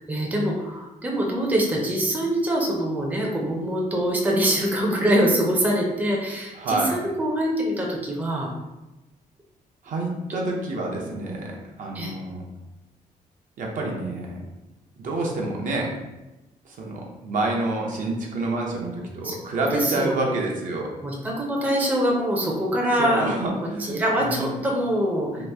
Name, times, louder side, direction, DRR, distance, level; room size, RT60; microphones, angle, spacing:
voice 1, 0.1-8.5 11.0-11.2 11.9-12.1 19.2-19.4 19.7-20.4 21.0-23.3 23.9-25.3, equal, 10° right, -2 dB, 0.5 m, -24 dB
voice 2, 6.5-7.0 9.8-12.4 13.6-14.4 15.0-15.9 16.6-20.9 23.0-24.6 25.4-25.5, right 2 dB, 60° right, -1 dB, 0.7 m, -28 dB
2.9 x 2.4 x 3.4 m, 1.0 s
cardioid pair, 135°, 15 cm